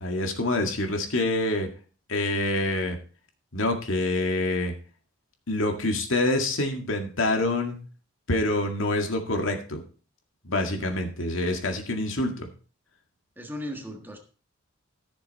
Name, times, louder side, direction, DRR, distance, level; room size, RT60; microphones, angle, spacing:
voice 1, 0.0-1.7 2.1-3.0 3.5-4.7 5.5-7.8 8.3-9.8 10.4-12.5, left 2 dB, 80° left, 4 dB, 2.0 m, -26 dB
voice 2, 13.4-14.2, left 1 dB, 10° right, 3 dB, 1.5 m, -37 dB
14.5 x 6.7 x 4.2 m, 0.38 s
head